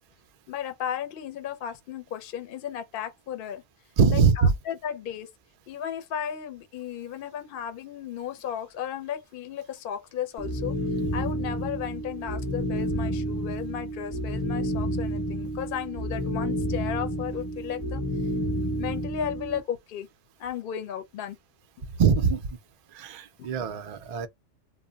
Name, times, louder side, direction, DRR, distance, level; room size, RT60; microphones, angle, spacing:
voice 1, 0.5-3.6 4.1-5.3 5.7-10.7 11.1-18.0 18.8-20.1 20.4-21.4 23.4-23.5, left 9 dB, 60° left, 0.6 m, -35 dB
voice 2, 4.0-4.5 22.0-22.6 22.9-24.3, right 5 dB, 70° right, 0.3 m, -22 dB
sound 1, 10.4-19.6, equal, 20° left, 0.7 m, -30 dB
2.1 x 2.0 x 3.7 m
omnidirectional pair, 1.2 m